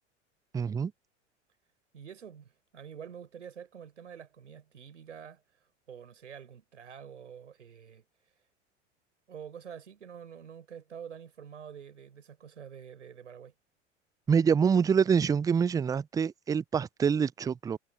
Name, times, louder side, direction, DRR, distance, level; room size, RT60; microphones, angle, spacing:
voice 1, 0.5-0.9 14.3-17.8, right 6 dB, 10° right, 0.5 m, -26 dB
voice 2, 1.9-5.4 5.9-8.0 9.3-13.5, right 8 dB, 75° right, 5.3 m, -47 dB
figure-of-eight pair, 85°, 36 cm